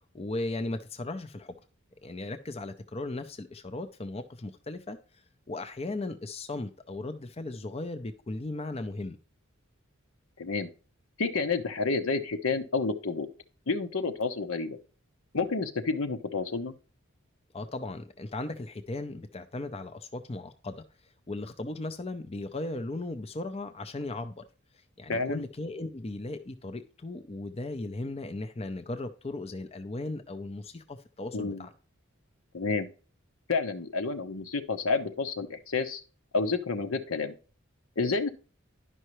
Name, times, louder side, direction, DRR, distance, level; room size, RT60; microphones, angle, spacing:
voice 1, 0.1-1.6 2.0-5.0 5.5-9.2 17.5-20.8 21.3-24.4 25.0-31.7, left 2 dB, 30° left, 8 dB, 0.6 m, -37 dB
voice 2, 11.2-13.3 13.7-14.8 15.3-16.7 25.1-25.4 31.3-31.6 32.5-32.9 33.5-36.0 36.3-37.3 38.0-38.3, left 4 dB, 75° left, 8 dB, 0.9 m, -29 dB
11.0 x 5.5 x 3.1 m, 0.36 s
head